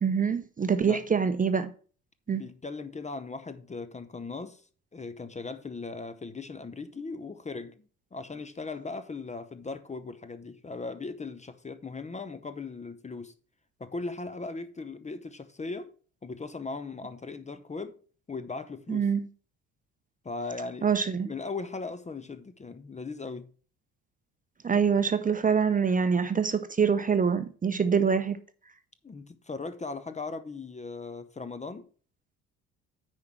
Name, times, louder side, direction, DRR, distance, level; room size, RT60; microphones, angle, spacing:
voice 1, 0.0-1.7 2.3-2.4 18.9-19.3 20.8-21.3 24.6-28.4, right 6 dB, 20° right, 0.8 m, -25 dB
voice 2, 2.3-4.6 4.9-7.7 8.1-13.3 13.8-15.9 16.2-17.9 18.3-19.1 20.2-20.9 21.2-23.5 29.0-31.9, left 3 dB, 15° left, 0.8 m, -38 dB
9.6 x 4.5 x 6.1 m
figure-of-eight pair, 55°, 42 cm